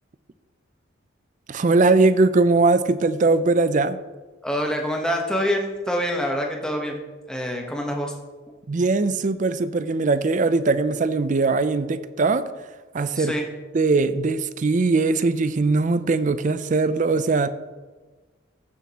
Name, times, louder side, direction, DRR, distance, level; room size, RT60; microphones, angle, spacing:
voice 1, 1.5-4.0 8.7-12.4 12.9-13.3 13.7-17.5, right 3 dB, 40° right, 13 dB, 0.4 m, -20 dB
voice 2, 4.4-8.1 13.1-13.4, equal, 5° left, 1 dB, 1.0 m, -26 dB
14.5 x 7.2 x 2.9 m, 1.3 s
head